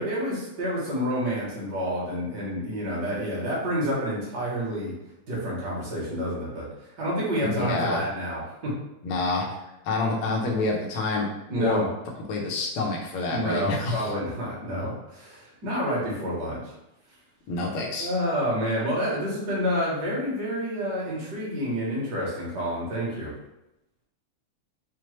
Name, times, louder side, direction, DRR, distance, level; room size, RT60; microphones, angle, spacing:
voice 1, 0.0-4.9 5.3-6.7 7.0-8.7 11.5-11.8 13.2-16.6 18.0-23.3, equal, 45° right, -6 dB, 1.4 m, -29 dB
voice 2, 7.4-8.0 9.0-9.4 9.8-11.3 11.5-11.8 12.3-14.1 17.5-18.1, left 3 dB, 80° left, -1 dB, 1.3 m, -27 dB
6.0 x 2.0 x 3.1 m, 0.91 s
omnidirectional pair, 3.4 m